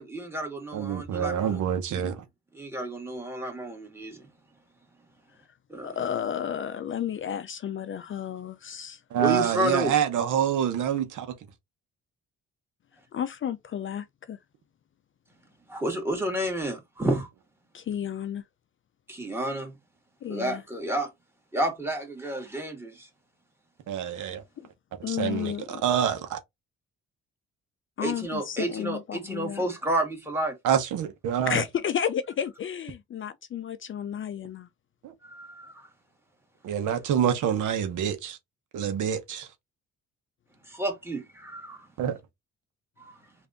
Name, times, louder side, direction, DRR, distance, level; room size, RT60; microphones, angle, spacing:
voice 1, 0.0-1.6 2.0-2.1 2.5-4.2 5.7-5.9 9.2-9.9 15.7-17.3 19.1-19.7 20.3-21.1 21.5-23.1 28.0-30.6 35.2-35.9 40.7-41.9 43.1-43.2, right 1 dB, 10° right, 1.8 m, -30 dB
voice 2, 0.7-2.2 9.1-11.3 23.9-24.4 25.1-26.4 30.6-31.6 35.0-35.1 36.6-38.4 38.7-39.5 42.0-42.2, right 9 dB, 80° right, 0.9 m, -26 dB
voice 3, 5.8-9.0 13.1-14.4 17.7-18.4 20.2-20.6 24.6-24.7 25.0-25.8 28.0-29.7 31.5-34.7, left 9 dB, 40° left, 0.4 m, -32 dB
3.3 x 2.6 x 3.8 m
cardioid pair, 90°, 30 cm